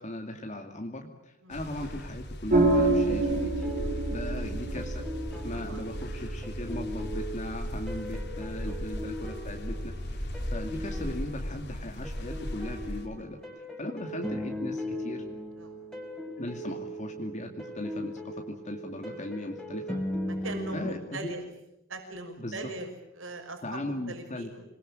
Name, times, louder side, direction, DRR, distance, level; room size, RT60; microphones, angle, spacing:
voice 1, 0.0-3.7 4.1-5.0 5.4-13.4 13.8-15.2 16.4-20.0 20.7-21.3 22.4-22.6 23.6-24.5, left 1 dB, 35° left, 3 dB, 2.5 m, -38 dB
sound 1, 1.5-13.1, equal, 60° left, 4.3 m, -37 dB
sound 2, 2.5-11.1, right 2 dB, 40° right, 6.3 m, -30 dB
sound 3, 3.1-21.0, equal, 5° left, 5.5 m, -39 dB
voice 2, 4.2-4.7 5.3-5.9 8.7-8.8 15.6-15.8 20.3-21.4 21.9-22.9 23.1-24.6, right 2 dB, 70° right, 5 dB, 5.9 m, -41 dB
27.5 x 21.5 x 8.9 m, 0.83 s
head